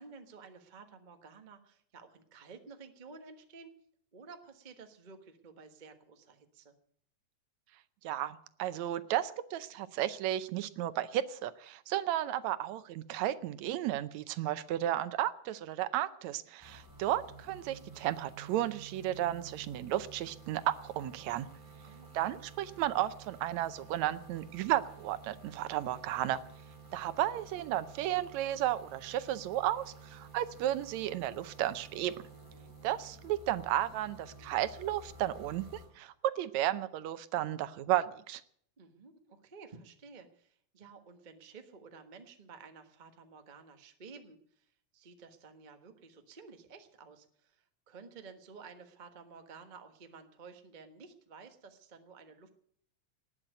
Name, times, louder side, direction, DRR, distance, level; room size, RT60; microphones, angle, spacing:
voice 1, 0.0-3.7 4.1-6.7 21.8-22.4 38.8-52.5, right 4 dB, 55° right, 6 dB, 0.5 m, -53 dB
voice 2, 8.0-21.5 22.1-26.4 26.9-32.2 32.8-38.4, right 13 dB, 75° right, 14 dB, 2.0 m, -33 dB
sound 1, 16.6-35.9, right 3 dB, 5° right, 3.2 m, -52 dB
19.0 x 7.5 x 9.1 m, 0.63 s
omnidirectional pair, 3.3 m